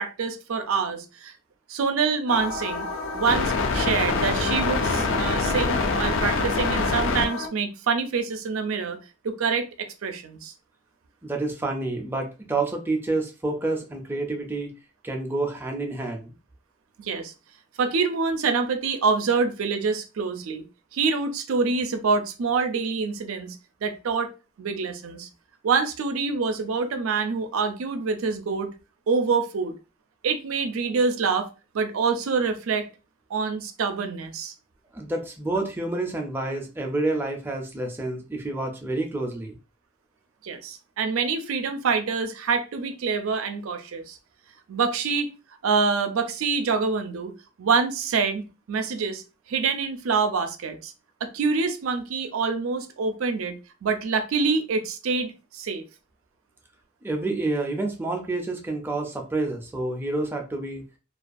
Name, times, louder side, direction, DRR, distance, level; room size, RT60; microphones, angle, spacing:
voice 1, 0.0-1.3 1.7-9.0 9.2-10.5 17.0-17.3 17.8-20.6 20.9-23.6 23.8-24.3 24.6-25.3 25.6-28.7 29.1-29.7 30.2-31.5 31.7-32.9 33.3-34.5 40.4-44.2 44.7-45.3 45.6-47.3 47.6-49.2 49.5-50.9 51.2-53.6 53.8-55.8, right 5 dB, 85° right, 7 dB, 0.4 m, -26 dB
sound 1, 2.3-7.5, left 3 dB, 65° left, 0.4 m, -25 dB
voice 2, 11.2-14.7 15.0-16.3 34.9-39.6 57.0-60.8, right 2 dB, 10° right, 2 dB, 0.4 m, -28 dB
2.3 x 2.3 x 2.5 m, 0.31 s
head